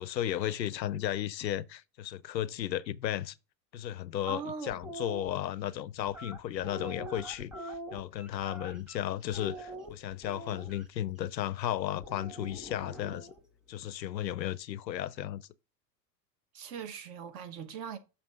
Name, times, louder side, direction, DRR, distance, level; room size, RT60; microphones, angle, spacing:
voice 1, 0.0-3.3 3.7-13.3 13.7-15.5, left 12 dB, 85° left, 0.6 m, -34 dB
voice 2, 4.3-4.7 16.5-18.0, right 6 dB, 45° right, 1.2 m, -40 dB
sound 1, 4.7-5.3 6.1-9.0 9.3-10.8 12.0-13.4, right 1 dB, ahead, 1.3 m, -44 dB
7.0 x 2.8 x 5.0 m
figure-of-eight pair, 85°, 50 cm